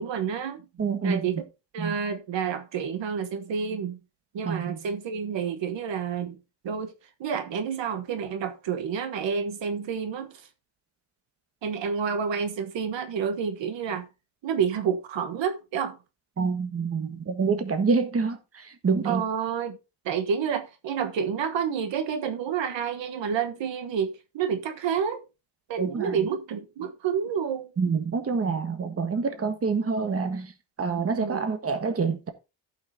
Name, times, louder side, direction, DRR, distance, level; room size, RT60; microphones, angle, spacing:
voice 1, 0.0-0.7 1.0-1.4 1.7-4.0 4.3-6.4 6.6-6.9 7.2-10.5 11.6-14.1 14.4-16.0 19.0-19.8 20.0-25.2 25.7-27.7 31.1-31.5, right 7 dB, 75° right, 1.3 m, -29 dB
voice 2, 0.8-1.3 1.8-2.0 4.4-4.8 16.4-19.2 25.8-26.1 27.8-30.5 30.8-32.3, right 5 dB, 30° right, 1.4 m, -27 dB
15.5 x 5.8 x 2.8 m
cardioid pair, 125°, 44 cm